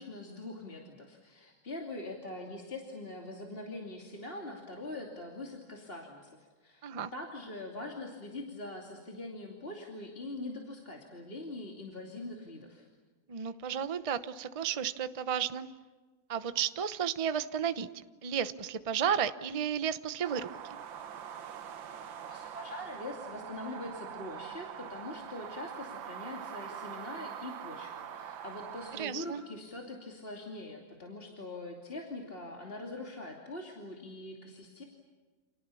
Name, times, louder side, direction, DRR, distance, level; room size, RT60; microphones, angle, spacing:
voice 1, 0.0-12.9 22.3-34.8, left 2 dB, 30° left, 0 dB, 2.9 m, -43 dB
voice 2, 13.3-15.7 16.3-17.9 18.2-20.5 28.9-29.4, right 8 dB, 40° right, 11 dB, 0.4 m, -33 dB
sound 1, 20.2-29.0, right 8 dB, 85° right, 1.8 m, -44 dB
29.5 x 28.0 x 7.1 m, 1.4 s
omnidirectional pair, 2.0 m